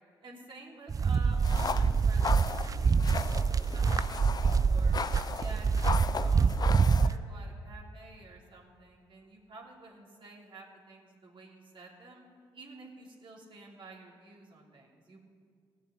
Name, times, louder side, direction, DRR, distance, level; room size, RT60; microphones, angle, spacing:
voice 1, 0.2-5.0 5.3-12.2 12.5-15.2, right 3 dB, 50° right, -3 dB, 3.3 m, -51 dB
sound 1, 0.9-7.2, right 5 dB, 35° right, 0.4 m, -26 dB
sound 2, 1.4-7.1, left 5 dB, 40° left, 0.6 m, -37 dB
16.0 x 7.3 x 8.3 m, 2.1 s
hypercardioid pair, 45°, 11 cm